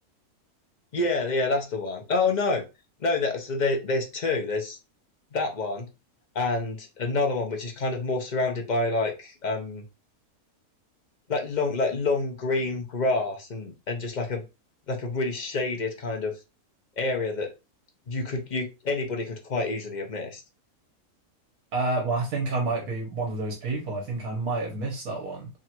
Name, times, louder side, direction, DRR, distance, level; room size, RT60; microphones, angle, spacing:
voice 1, 0.9-2.6 3.0-4.8 5.3-5.9 6.3-9.8 11.3-14.4 14.9-16.3 17.0-17.5 18.1-20.4, left 3 dB, 40° left, 3 dB, 0.7 m, -27 dB
voice 2, 21.7-25.5, right 3 dB, 75° right, 0 dB, 1.6 m, -29 dB
3.6 x 2.4 x 4.4 m, 0.27 s
omnidirectional pair, 1.7 m